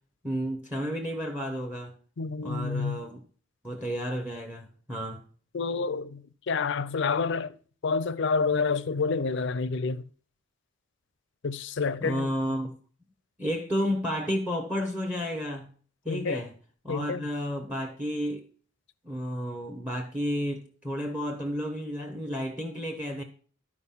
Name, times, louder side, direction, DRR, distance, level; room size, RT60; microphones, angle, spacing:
voice 1, 0.2-1.9 2.4-3.2 3.6-5.2 12.0-12.7 13.4-15.7 16.0-16.5 16.8-18.4 19.0-23.2, equal, 5° right, 0.9 m, -32 dB
voice 2, 2.2-3.0 5.5-7.5 7.8-10.0 11.4-12.3 16.1-16.4 16.9-17.2, left 4 dB, 55° left, 0.5 m, -28 dB
11.5 x 4.8 x 5.6 m
head